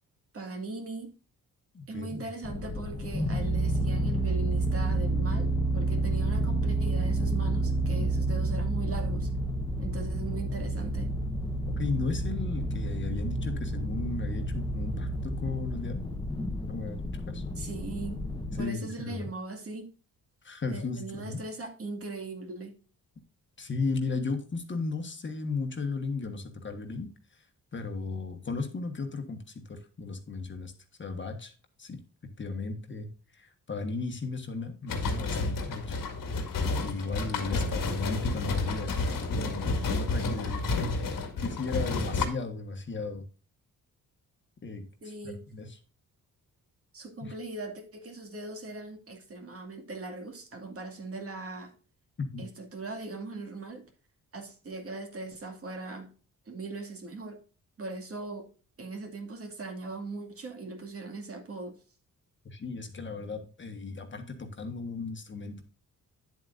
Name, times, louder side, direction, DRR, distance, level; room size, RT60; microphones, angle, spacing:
voice 1, 0.3-1.1 1.9-9.3 9.8-11.1 17.6-18.2 18.6-19.9 20.7-22.7 45.0-45.4 46.9-51.7 52.4-53.8 54.3-56.1 56.5-57.4 57.8-58.5 58.8-61.7, right 3 dB, 45° right, 4 dB, 2.2 m, -39 dB
voice 2, 1.7-2.2 11.8-16.1 16.7-17.4 18.5-19.3 20.4-21.4 23.6-30.7 31.0-31.5 31.8-32.0 32.4-35.9 36.8-38.9 39.2-43.2 44.6-45.8 47.2-47.4 52.3-52.4 62.4-65.6, left 4 dB, 35° left, 6 dB, 1.4 m, -35 dB
sound 1, 2.4-18.6, right 1 dB, 15° left, 1.1 m, -30 dB
sound 2, 34.9-42.3, left 3 dB, 80° left, 2.0 m, -30 dB
10.0 x 7.8 x 2.6 m, 0.36 s
cardioid pair, 120°, 33 cm